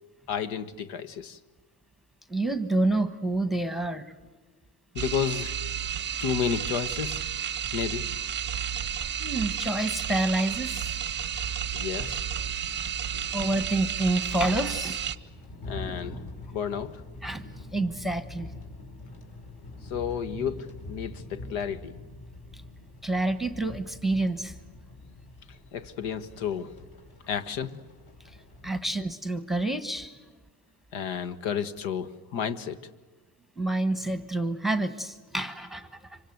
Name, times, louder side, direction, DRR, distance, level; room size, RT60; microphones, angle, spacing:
voice 1, 0.3-1.4 4.9-5.7 6.2-7.2 7.7-8.1 11.7-12.5 13.1-13.3 15.7-16.2 16.5-17.0 19.8-21.9 25.5-26.7 27.3-27.8 30.9-32.8, left 7 dB, 80° left, 12 dB, 1.6 m, -32 dB
voice 2, 2.3-4.1 9.2-11.0 13.3-15.0 17.2-17.4 17.7-18.5 22.5-22.6 23.0-24.6 28.2-28.4 28.6-30.2 33.6-36.2, right 2 dB, ahead, 11 dB, 1.2 m, -28 dB
sound 1, 5.0-15.2, right 9 dB, 25° right, 0.7 m, -32 dB
sound 2, 11.1-28.9, left 2 dB, 50° left, 5.0 m, -45 dB
26.0 x 25.0 x 8.0 m, 1.3 s
cardioid pair, 135°, 45 cm